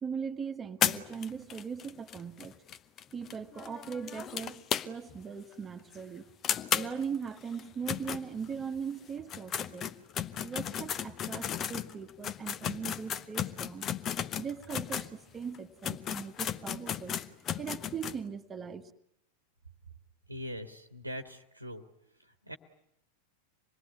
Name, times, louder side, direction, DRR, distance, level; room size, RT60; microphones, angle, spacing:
voice 1, 0.0-2.5 3.1-4.6 4.8-6.3 6.7-9.8 10.4-13.8 14.3-17.2 17.5-18.9, right 6 dB, 20° right, 1.5 m, -39 dB
sound 1, 0.8-5.2 5.5-5.6 5.9-6.0 6.4-8.8 9.2-15.1 15.5-15.6 15.8-18.2, left 9 dB, 30° left, 0.9 m, -35 dB
voice 2, 20.3-21.8 22.5-22.6, equal, 90° right, 1.5 m, -41 dB
26.5 x 20.5 x 9.8 m
figure-of-eight pair, 90°, 0 cm